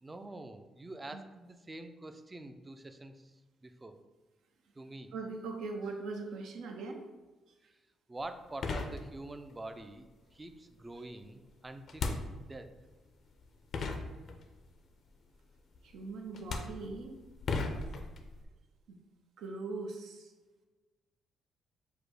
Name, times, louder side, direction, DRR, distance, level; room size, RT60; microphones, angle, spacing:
voice 1, 0.0-4.0 4.7-5.1 7.7-7.8 8.1-10.1 10.3-12.2 12.5-12.7, right 2 dB, 20° right, 8 dB, 0.4 m, -46 dB
voice 2, 5.1-7.1 15.8-17.2 18.9-19.0 19.4-20.3, right 3 dB, 80° right, 3 dB, 0.6 m, -40 dB
sound 1, 8.2-8.3 8.6-9.5 11.9-12.7 13.4-13.5 13.7-14.7 15.7-16.0 16.3-18.4, left 3 dB, 60° left, 0.5 m, -37 dB
4.9 x 2.1 x 4.6 m, 1.2 s
cardioid pair, 90°, 0 cm